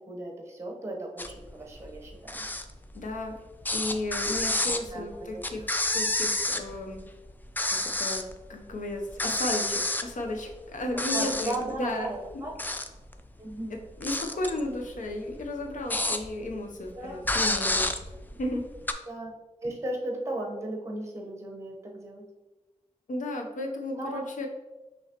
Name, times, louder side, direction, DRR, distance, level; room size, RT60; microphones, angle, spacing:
voice 1, 0.1-2.5 4.9-5.3 11.1-12.5 13.4-13.8 17.0-17.2 19.1-19.3 19.6-22.2 23.9-24.3, right 1 dB, 20° right, 0 dB, 0.9 m, -36 dB
sound 1, 1.2-1.5 1.8-3.3 3.6-7.0 7.3-8.3 8.7-8.8 9.1-10.7 11.0-11.7 12.3-13.1 13.5-16.5 16.9-17.0 17.2-18.9, left 2 dB, 15° left, 0.3 m, -29 dB
voice 2, 2.9-3.4 3.7-5.7 5.9-7.0 7.7-12.4 13.7-17.9 18.4-18.6 23.1-24.5, left 1 dB, 90° left, 2 dB, 0.7 m, -34 dB
5.7 x 3.1 x 2.9 m, 1.1 s
wide cardioid pair, 100°, 13 cm